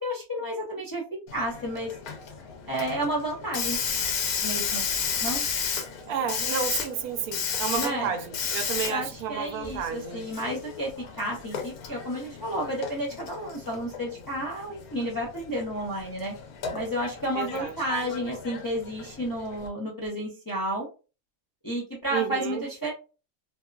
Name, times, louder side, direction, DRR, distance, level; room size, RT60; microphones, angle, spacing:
voice 1, 0.0-1.0 1.3-1.9 2.7-3.8 4.4-4.9 5.2-5.4 7.8-8.1 8.9-16.3 16.7-20.9 21.6-22.9, equal, 30° left, 0.3 m, -31 dB
Hiss, 1.3-19.7, left 6 dB, 85° left, 1.1 m, -34 dB
voice 2, 6.1-10.3 17.3-17.7 22.1-22.6, right 7 dB, 90° right, 1.1 m, -31 dB
2.8 x 2.3 x 2.2 m
omnidirectional pair, 1.5 m